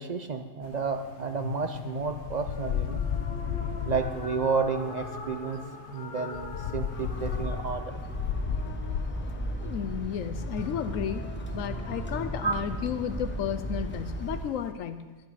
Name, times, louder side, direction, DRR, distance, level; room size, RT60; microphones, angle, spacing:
voice 1, 0.0-3.0 3.9-5.6 5.9-7.8 12.4-12.6, right 5 dB, 50° right, 7 dB, 0.5 m, -31 dB
sound 1, 0.6-14.7, left 8 dB, 65° left, 0.9 m, -36 dB
sound 2, 2.5-13.4, left 2 dB, 40° left, 1.2 m, -45 dB
sound 3, 6.9-14.4, right 1 dB, 10° left, 0.9 m, -36 dB
voice 2, 9.6-11.3 11.5-15.1, left 8 dB, 90° left, 10 dB, 1.0 m, -33 dB
11.0 x 10.0 x 4.9 m, 1.3 s
omnidirectional pair, 1.3 m